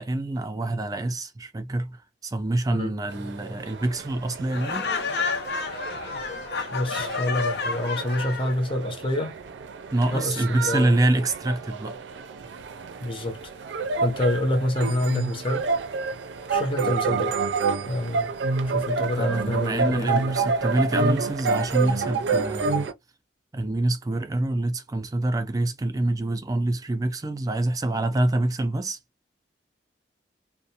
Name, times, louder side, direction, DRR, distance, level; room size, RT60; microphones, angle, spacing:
voice 1, 0.0-4.9 9.9-12.0 19.2-22.9 23.5-29.0, right 2 dB, 20° right, 0.4 m, -26 dB
sound 1, 3.1-22.9, right 4 dB, 85° right, 0.4 m, -29 dB
Laughter, 4.5-8.6, left 4 dB, 65° left, 0.5 m, -30 dB
voice 2, 6.7-9.3 10.1-10.9 13.0-13.5 14.0-15.7 16.5-17.4 17.9-18.3 18.7-20.3, left 1 dB, 30° left, 0.6 m, -27 dB
2.5 x 2.0 x 2.7 m
head